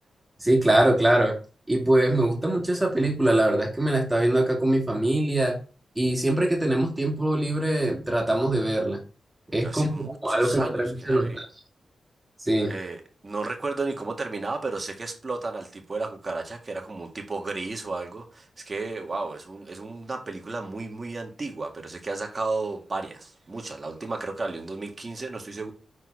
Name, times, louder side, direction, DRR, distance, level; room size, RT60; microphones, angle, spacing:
voice 1, 0.4-1.3 1.7-5.6 6.0-9.0 9.5-11.5 12.4-12.7, right 1 dB, 15° right, 2.4 m, -23 dB
voice 2, 9.6-11.4 12.7-25.7, right 3 dB, 35° right, 2.0 m, -33 dB
6.5 x 4.4 x 4.9 m
cardioid pair, 60°, 0 cm